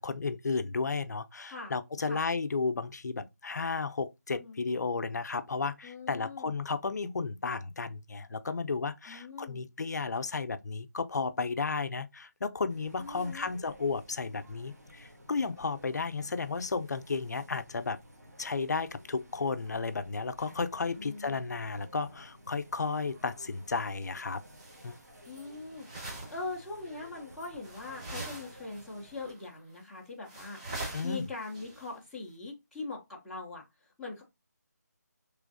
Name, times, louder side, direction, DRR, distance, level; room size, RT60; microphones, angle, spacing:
voice 1, 0.0-18.0 18.4-24.4 24.8-24.9 30.9-31.2, left 4 dB, 70° left, 0.5 m, -33 dB
voice 2, 5.8-6.5 9.1-9.6 13.0-13.5 21.0-21.4 25.3-34.2, left 3 dB, ahead, 0.3 m, -42 dB
sound 1, 12.7-29.3, equal, 60° right, 1.5 m, -54 dB
sound 2, 24.5-25.0 25.2-26.6 26.9-27.1 27.6-28.9 29.2-29.4 29.8-29.9 30.3-31.9, right 2 dB, 25° right, 1.0 m, -43 dB
3.4 x 3.1 x 2.5 m
figure-of-eight pair, 165°, 10 cm